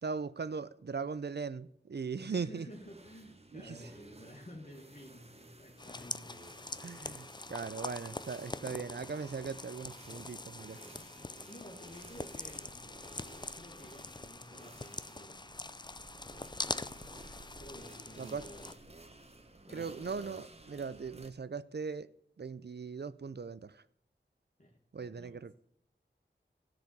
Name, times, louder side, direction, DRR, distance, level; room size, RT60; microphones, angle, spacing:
voice 1, 0.0-2.7 3.5-3.8 6.8-10.8 18.2-18.5 19.7-22.1 22.4-23.8 24.9-25.5, right 5 dB, 60° right, 0.5 m, -39 dB
voice 2, 2.2-6.5 10.9-11.1 11.5-12.9 13.6-15.4 17.6-18.7 19.7-20.1 24.6-25.4, equal, 40° left, 1.6 m, -52 dB
sound 1, 2.7-21.3, right 2 dB, 30° right, 1.1 m, -55 dB
sound 2, 5.8-18.7, left 2 dB, 20° left, 0.4 m, -44 dB
13.5 x 5.0 x 8.4 m
wide cardioid pair, 40°, 20 cm